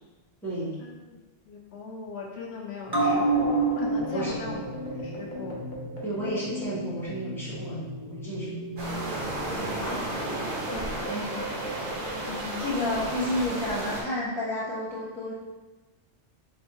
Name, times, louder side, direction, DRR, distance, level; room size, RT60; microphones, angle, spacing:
voice 1, 0.4-0.8 4.1-4.4 6.0-7.8 8.2-8.5 9.7-10.0 11.0-11.3 12.6-15.4, equal, ahead, -10 dB, 1.3 m, -31 dB
voice 2, 1.5-4.7 5.0-5.5 9.5-10.1 10.7-11.5 12.3-12.6, left 4 dB, 75° left, -1 dB, 0.9 m, -39 dB
sound 1, 2.9-9.8 10.1-10.2, right 2 dB, 25° right, 0.7 m, -30 dB
sound 2, 3.1-7.8 8.1-8.2 8.8-13.6, right 2 dB, 45° left, 1.0 m, -41 dB
sound 3, 8.8-14.0, right 1 dB, 55° right, 1.0 m, -33 dB
4.1 x 3.1 x 3.0 m, 1.2 s
omnidirectional pair, 1.1 m